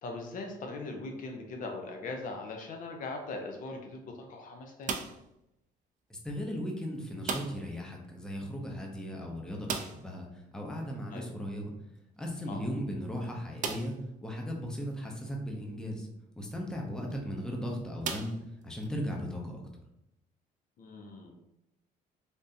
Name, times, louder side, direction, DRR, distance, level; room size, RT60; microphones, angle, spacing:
voice 1, 0.0-4.9 11.1-11.3 12.5-12.6 20.8-21.4, left 3 dB, 55° left, 3 dB, 0.5 m, -40 dB
sound 1, 4.8-5.4 7.2-7.8 8.0-8.1 8.5-8.6 9.6-10.2 12.0-12.1 12.7-12.8 13.6-14.1 14.8-14.9 16.9-17.1 18.0-18.9, right 5 dB, 50° right, 0.4 m, -37 dB
voice 2, 6.1-11.7 12.2-14.0 14.2-16.1 16.4-18.3 18.6-19.6, equal, 5° left, 0 dB, 0.6 m, -37 dB
3.5 x 2.6 x 2.6 m, 0.85 s
cardioid pair, 110°, 17 cm